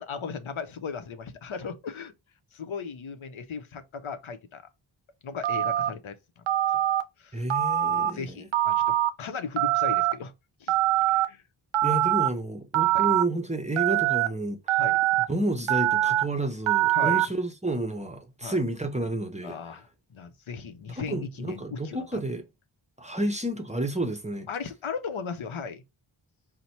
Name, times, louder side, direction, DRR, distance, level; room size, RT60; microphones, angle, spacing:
voice 1, 0.0-2.1 2.5-4.7 5.2-6.8 7.2-7.4 7.9-10.3 10.6-10.8 11.1-11.4 12.9-13.1 14.8-15.0 16.9-17.3 18.4-18.6 19.4-22.2 24.5-25.8, left 5 dB, 75° left, 0.7 m, -37 dB
Telephone, 5.4-5.9 6.5-7.0 7.5-8.1 8.5-9.1 9.6-10.1 10.7-11.3 11.7-12.3 12.7-13.2 13.8-14.3 14.7-15.2 15.7-16.2 16.7-17.2, right 14 dB, 75° right, 0.5 m, -23 dB
voice 2, 7.3-8.5 11.8-14.8 15.3-19.6 21.1-22.5 23.0-24.5, right 1 dB, 15° right, 0.7 m, -30 dB
4.1 x 2.1 x 4.3 m
cardioid pair, 45°, 49 cm